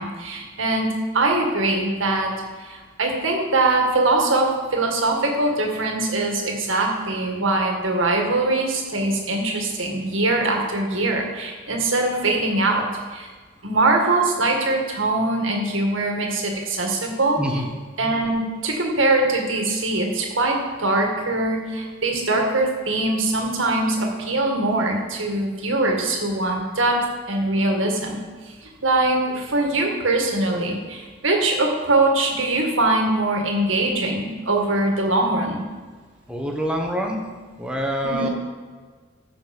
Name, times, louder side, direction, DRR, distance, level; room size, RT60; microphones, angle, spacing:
voice 1, 0.0-2.3 2.6-12.8 13.1-13.3 13.6-17.4 18.0-27.0 27.3-28.2 28.5-35.6 38.0-38.3, right 2 dB, 90° right, 1 dB, 2.1 m, -22 dB
voice 2, 17.4-17.7 36.3-37.2 37.6-38.3, equal, 5° right, 1 dB, 1.3 m, -25 dB
14.5 x 6.0 x 5.4 m, 1.4 s
head